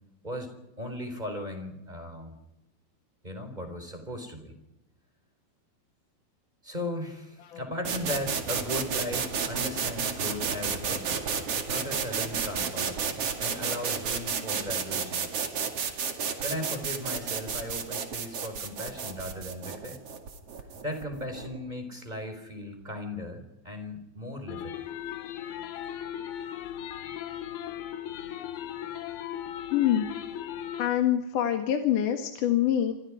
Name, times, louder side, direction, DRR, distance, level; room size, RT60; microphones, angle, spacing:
voice 1, 0.8-2.4 3.2-4.6 6.6-15.4 16.4-20.0 20.8-24.8, left 1 dB, 10° right, 6 dB, 4.1 m, -37 dB
sound 1, 7.8-21.6, right 6 dB, 45° right, 2.8 m, -32 dB
sound 2, 24.5-30.9, left 10 dB, 85° left, 3.4 m, -37 dB
voice 2, 29.7-30.1 30.8-32.9, left 11 dB, 65° left, 5 dB, 3.0 m, -25 dB
28.0 x 27.0 x 5.0 m, 0.90 s
omnidirectional pair, 4.3 m